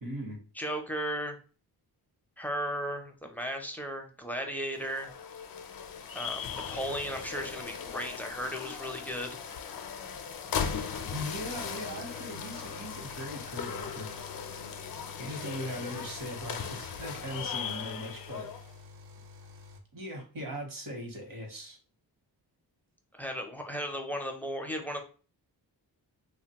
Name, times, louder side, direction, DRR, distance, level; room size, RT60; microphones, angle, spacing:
voice 1, 0.0-0.4 11.1-14.3 15.2-18.5 19.9-21.8, equal, 55° right, 2 dB, 1.0 m, -39 dB
voice 2, 0.6-1.4 2.4-5.1 6.1-9.3 23.1-25.0, equal, 5° left, 3 dB, 0.4 m, -35 dB
sound 1, 4.6-18.7, left 7 dB, 60° left, 0.5 m, -38 dB
sound 2, 10.5-19.8, left 4 dB, 85° right, 0.6 m, -51 dB
2.8 x 2.2 x 2.8 m, 0.37 s
wide cardioid pair, 100°, 41 cm